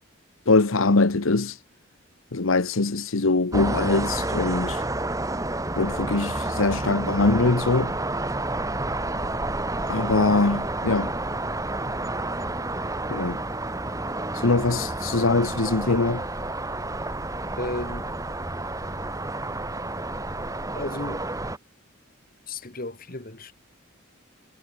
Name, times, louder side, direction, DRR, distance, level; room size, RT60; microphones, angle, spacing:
voice 1, 0.5-1.6 2.3-4.8 5.8-7.9 9.9-11.1 13.1-13.4 14.3-16.2, left 3 dB, 80° left, 1.1 m, -22 dB
sound 1, 3.5-21.6, right 2 dB, 15° right, 2.3 m, -30 dB
voice 2, 17.6-18.1 20.7-21.3 22.5-23.5, left 2 dB, 45° left, 2.3 m, -34 dB
head